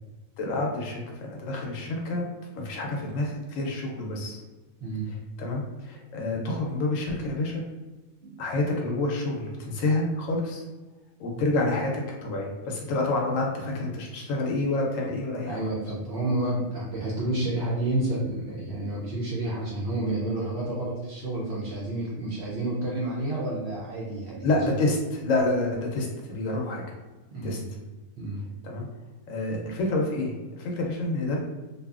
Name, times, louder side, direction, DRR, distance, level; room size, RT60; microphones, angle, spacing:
voice 1, 0.4-2.2 2.5-4.4 5.4-7.6 8.4-10.6 11.2-15.6 24.4-26.8 27.4-27.6 28.6-28.9 29.3-31.4, left 2 dB, 70° left, 0 dB, 0.9 m, -28 dB
voice 2, 4.8-5.1 8.2-8.4 15.5-24.5 27.3-27.7 28.2-28.5, right 1 dB, 65° right, -5 dB, 0.7 m, -30 dB
2.7 x 2.3 x 2.3 m, 1.2 s
omnidirectional pair, 1.5 m